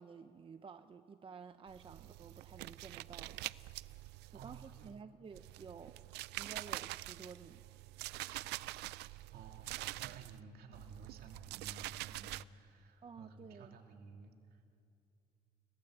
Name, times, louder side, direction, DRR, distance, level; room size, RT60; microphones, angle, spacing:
voice 1, 0.0-3.5 4.3-6.0 6.4-7.7 13.0-13.8, right 6 dB, 30° right, 10 dB, 0.8 m, -52 dB
sound 1, 1.7-5.0 5.3-10.4 10.7-12.4, right 18 dB, 85° right, 0.5 m, -45 dB
voice 2, 4.0-4.9 9.3-14.6, right 4 dB, 65° right, 3 dB, 2.7 m, -55 dB
30.0 x 18.5 x 8.0 m, 2.6 s
cardioid pair, 110°, 17 cm